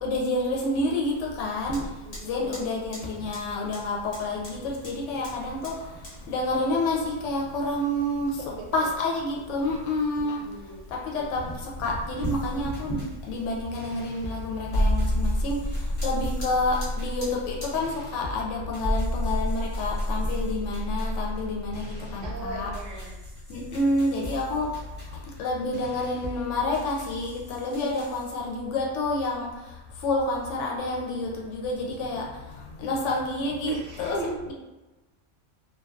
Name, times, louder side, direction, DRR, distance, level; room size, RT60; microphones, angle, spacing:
voice 1, 0.0-1.8 2.2-8.4 8.7-10.5 10.9-22.7 23.5-24.7 25.1-34.2 34.5-34.6, left 2 dB, 75° left, -2 dB, 0.9 m, -29 dB
Fire, 1.1-17.9, equal, 45° left, 0.9 m, -42 dB
voice 2, 2.0-2.6 8.4-8.9 10.2-10.8 22.2-23.1 23.8-24.0 33.7-34.3, right 3 dB, 80° right, -2 dB, 0.9 m, -38 dB
sound 1, 12.2-28.2, equal, 10° left, 0.7 m, -42 dB
sound 2, 14.7-23.1 23.4-23.5, left 1 dB, 60° right, 0.4 m, -28 dB
2.6 x 2.2 x 2.3 m, 1.1 s
omnidirectional pair, 1.3 m